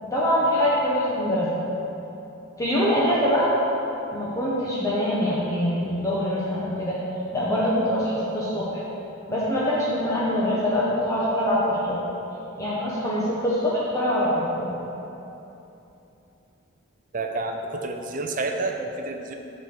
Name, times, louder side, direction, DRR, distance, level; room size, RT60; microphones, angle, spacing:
voice 1, 0.0-1.5 2.6-3.5 4.1-7.0 7.3-8.8 9.3-12.0 12.6-14.7, equal, 15° left, -8 dB, 1.1 m, -24 dB
voice 2, 17.1-19.3, right 2 dB, 40° right, 4 dB, 0.6 m, -29 dB
8.9 x 4.2 x 6.3 m, 2.9 s
head